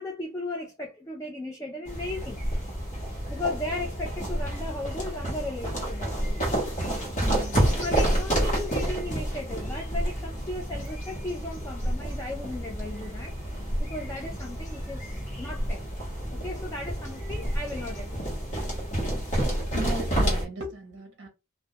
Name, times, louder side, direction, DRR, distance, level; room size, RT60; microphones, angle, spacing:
voice 1, 0.0-2.4 3.3-7.0 7.7-13.3 13.8-15.8 16.3-18.5, left 2 dB, 15° left, 0.3 m, -36 dB
sound 1, 1.9-20.4, right 1 dB, 35° left, 0.9 m, -29 dB
voice 2, 7.2-7.6 19.7-21.3, right 2 dB, 55° right, 0.6 m, -36 dB
2.2 x 2.1 x 2.7 m
head